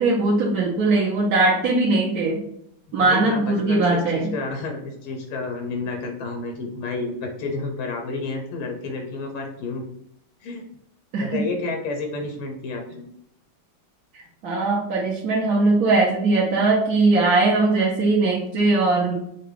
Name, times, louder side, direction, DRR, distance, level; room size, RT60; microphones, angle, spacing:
voice 1, 0.0-2.4 2.9-4.3 11.1-11.2 14.4-19.1, right 3 dB, 60° right, -4 dB, 1.0 m, -20 dB
voice 2, 2.9-9.9 10.4-10.6 11.2-13.0, left 3 dB, 85° left, 2 dB, 1.6 m, -30 dB
5.9 x 2.3 x 3.2 m, 0.73 s
omnidirectional pair, 2.3 m